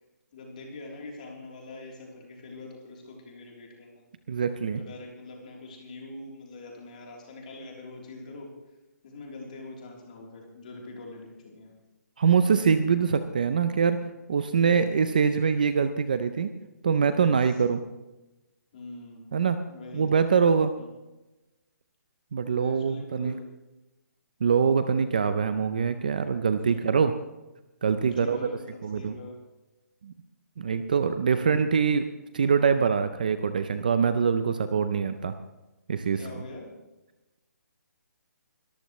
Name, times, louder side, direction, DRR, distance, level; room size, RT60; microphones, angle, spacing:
voice 1, 0.3-4.0 4.6-8.5 9.0-11.8 14.5-15.0 17.2-17.5 18.7-19.3 19.7-20.0 20.8-20.9 22.4-23.4 26.7-27.0 28.0-29.4 36.1-36.7, left 2 dB, 25° left, -1 dB, 3.4 m, -44 dB
voice 2, 4.3-4.8 12.2-16.5 16.8-17.8 19.3-19.6 19.9-20.7 22.3-23.4 24.4-27.1 27.8-28.4 28.8-29.1 30.0-30.1 30.6-32.0 32.3-35.3 35.9-36.2, right 6 dB, 30° right, 10 dB, 0.5 m, -24 dB
23.0 x 14.0 x 3.1 m, 1.0 s
hypercardioid pair, 180°, 9 cm